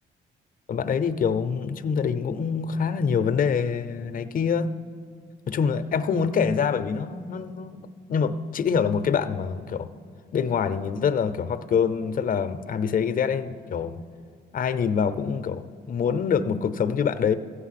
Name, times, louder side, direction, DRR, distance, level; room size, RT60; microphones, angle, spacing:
voice 1, 0.7-4.7 5.5-9.9 10.3-14.0 14.5-17.3, left 6 dB, 45° left, 12 dB, 0.6 m, -25 dB
14.0 x 8.1 x 5.8 m, 2.1 s
cardioid pair, 90°, 20 cm